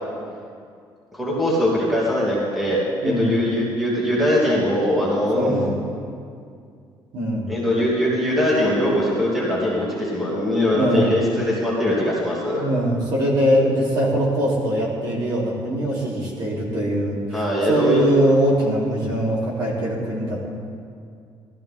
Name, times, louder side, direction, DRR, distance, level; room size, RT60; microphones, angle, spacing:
voice 1, 1.1-5.6 7.5-12.6 17.3-18.0, left 1 dB, ahead, -7 dB, 2.7 m, -21 dB
voice 2, 3.0-3.3 5.3-5.7 7.1-7.5 10.7-11.1 12.5-17.4 17.7-20.5, equal, 55° right, -5 dB, 3.7 m, -22 dB
18.0 x 14.0 x 3.8 m, 2.3 s
cardioid pair, 175°, 9 cm